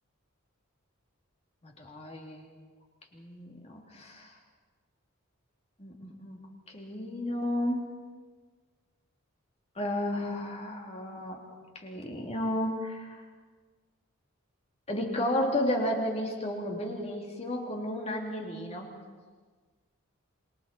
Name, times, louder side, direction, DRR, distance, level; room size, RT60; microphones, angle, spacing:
voice 1, 1.6-2.5 3.1-4.3 5.8-6.4 6.7-7.9 9.7-11.4 11.7-13.2 14.9-18.9, left 1 dB, 30° left, 1 dB, 3.1 m, -33 dB
27.0 x 22.0 x 4.6 m, 1.4 s
head